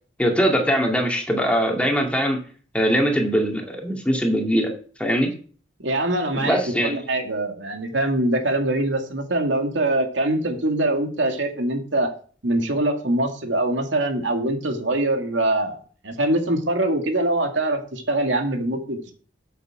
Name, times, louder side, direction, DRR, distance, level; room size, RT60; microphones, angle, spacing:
voice 1, 0.2-2.4 2.7-4.7 5.0-5.3 6.4-6.9, equal, 5° left, 1 dB, 2.2 m, -21 dB
voice 2, 5.8-12.1 12.4-19.1, right 1 dB, 90° right, 4 dB, 2.2 m, -23 dB
8.3 x 8.3 x 6.1 m, 0.43 s
head